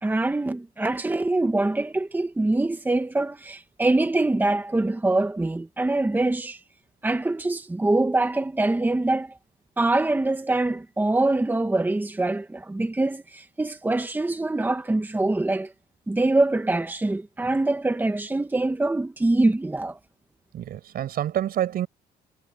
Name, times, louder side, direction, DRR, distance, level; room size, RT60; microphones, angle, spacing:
voice 1, 0.0-6.6 7.0-9.3 9.8-15.7 16.1-20.0, right 2 dB, 10° right, 1.6 m, -24 dB
voice 2, 20.5-21.9, right 11 dB, 60° right, 7.5 m, -27 dB
cardioid pair, 110°, 17 cm